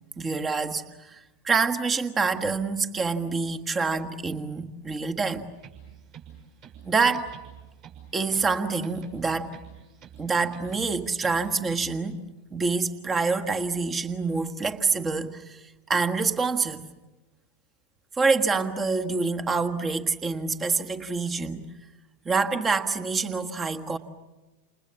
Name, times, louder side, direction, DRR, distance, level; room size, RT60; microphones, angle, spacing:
voice 1, 0.2-5.5 6.8-7.3 8.1-9.6 10.2-12.2 12.5-16.8 18.2-21.7 22.2-24.0, right 4 dB, 20° right, 8 dB, 1.5 m, -26 dB
sound 1, 5.5-12.1, right 8 dB, 40° right, 6.1 m, -48 dB
29.5 x 28.5 x 7.1 m, 1.1 s
figure-of-eight pair, 90°, 0 cm